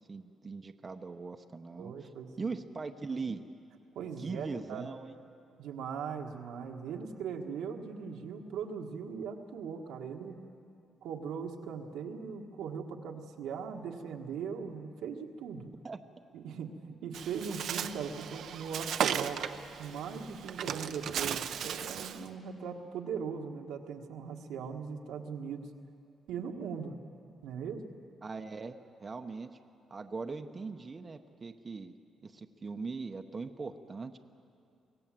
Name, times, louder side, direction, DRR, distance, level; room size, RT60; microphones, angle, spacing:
voice 1, 0.1-2.1 2.4-3.4 4.2-5.2 15.8-16.0 28.2-28.8 29.0-29.5 29.9-32.0 32.2-34.2, right 4 dB, 30° right, 5 dB, 0.9 m, -40 dB
voice 2, 1.8-2.5 3.9-4.9 5.6-10.4 11.0-15.7 16.3-19.4 19.8-25.7 26.3-27.0 27.4-27.8, right 6 dB, 85° right, 2 dB, 1.5 m, -39 dB
Bird, 17.1-22.3, right 8 dB, 70° right, 0.7 m, -36 dB
24.5 x 17.0 x 7.6 m, 2.5 s
cardioid pair, 90°, 0 cm